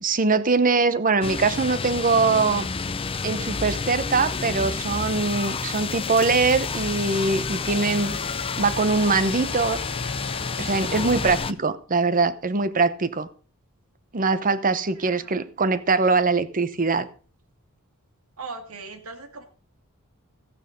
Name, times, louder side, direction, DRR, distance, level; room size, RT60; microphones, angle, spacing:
voice 1, 0.0-2.7 3.2-8.2 8.6-9.8 10.6-13.3 14.1-17.1, right 4 dB, 40° right, 13 dB, 0.9 m, -22 dB
sound 1, 1.2-11.5, left 4 dB, 25° left, 0.6 m, -29 dB
Wind instrument woodwind instrument, 7.7-11.3, left 4 dB, 55° left, 1.3 m, -41 dB
voice 2, 14.9-15.5 18.4-19.4, right 4 dB, 85° right, 7 dB, 2.3 m, -39 dB
14.5 x 9.0 x 5.2 m, 0.39 s
head